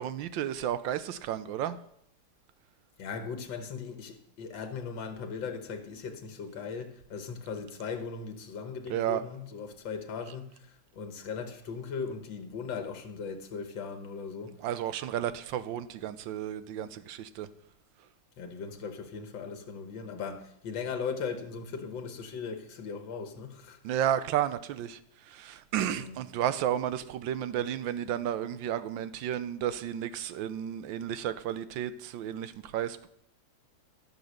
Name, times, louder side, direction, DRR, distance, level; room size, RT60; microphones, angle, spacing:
voice 1, 0.0-1.8 8.9-9.2 14.6-17.5 23.8-25.0 25.3-33.1, right 10 dB, 90° right, 1.4 m, -32 dB
voice 2, 3.0-14.5 18.4-23.9 25.9-26.2, left 5 dB, 80° left, 1.9 m, -38 dB
14.5 x 6.9 x 6.5 m
omnidirectional pair, 2.0 m